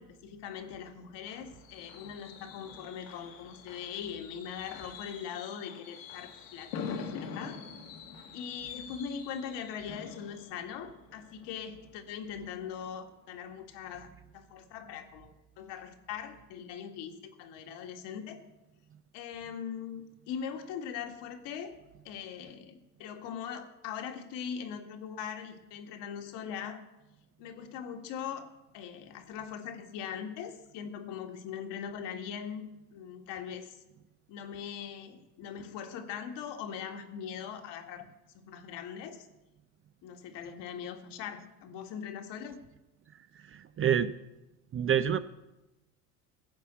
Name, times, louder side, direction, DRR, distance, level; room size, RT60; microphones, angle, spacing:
voice 1, 0.0-7.6 8.3-18.4 19.1-21.8 22.1-26.8 27.4-28.5 28.7-33.8 34.3-38.1 38.3-39.3 40.0-42.6, left 8 dB, 60° left, 5 dB, 1.8 m, -41 dB
Fireworks, 0.6-12.3 12.7-13.0 13.2-13.3, left 6 dB, 80° left, 1.9 m, -45 dB
voice 2, 43.4-44.1 44.7-45.2, right 9 dB, 30° right, 13 dB, 0.5 m, -27 dB
14.5 x 5.6 x 8.1 m, 0.98 s
hypercardioid pair, 70°, 48 cm